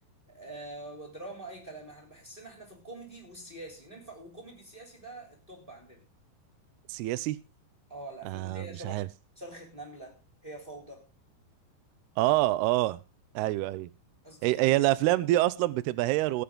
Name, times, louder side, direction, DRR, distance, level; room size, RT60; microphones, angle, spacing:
voice 1, 0.3-6.0 7.9-9.0 9.4-11.1 14.2-14.8, right 2 dB, 15° right, 1 dB, 2.9 m, -45 dB
voice 2, 6.9-7.4 8.3-9.1 12.2-13.0 13.4-13.9 14.4-16.4, right 17 dB, 80° right, 16 dB, 2.6 m, -26 dB
19.0 x 8.6 x 3.7 m, 0.29 s
omnidirectional pair, 5.0 m